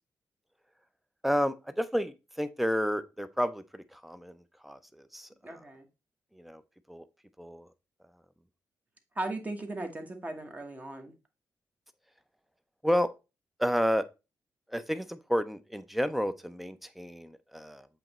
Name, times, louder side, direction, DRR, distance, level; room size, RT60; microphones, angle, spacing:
voice 1, 1.2-4.4 4.6-5.5 6.3-6.6 6.9-7.0 7.4-7.7 12.8-13.1 13.6-14.0 14.7-17.9, equal, ahead, 0.5 m, -31 dB
voice 2, 5.4-5.9 9.1-11.1, right 2 dB, 25° right, 1.2 m, -37 dB
7.6 x 3.0 x 4.2 m
cardioid pair, 105°, 6 cm